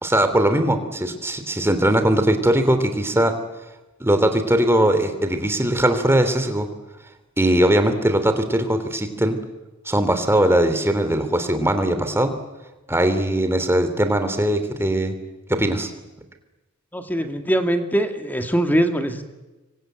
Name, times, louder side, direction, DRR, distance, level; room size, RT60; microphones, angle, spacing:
voice 1, 0.0-3.3 4.0-6.7 7.4-9.4 9.9-12.3 12.9-15.1 15.5-15.9, right 1 dB, 10° right, 8 dB, 2.9 m, -20 dB
voice 2, 16.9-19.2, right 1 dB, 10° left, 6 dB, 2.2 m, -22 dB
27.0 x 23.5 x 9.1 m, 1.1 s
head